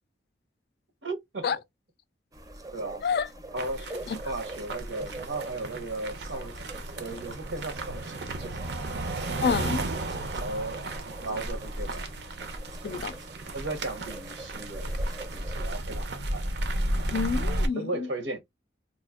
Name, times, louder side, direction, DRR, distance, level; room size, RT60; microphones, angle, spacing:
voice 1, 1.0-1.6 2.7-3.0 3.5-3.9 4.2-6.5 7.0-8.6 10.4-12.1 13.5-15.0 15.3-16.5 16.9-17.1 17.7-18.4, right 2 dB, 85° right, 1.1 m, -36 dB
sound 1, 2.3-15.7, right 2 dB, 20° right, 0.5 m, -45 dB
sound 2, 3.6-17.7, right 1 dB, 65° right, 0.6 m, -33 dB
voice 2, 9.4-9.9 12.8-13.1 17.1-18.1, left 5 dB, 55° left, 0.3 m, -28 dB
4.0 x 2.5 x 2.3 m
head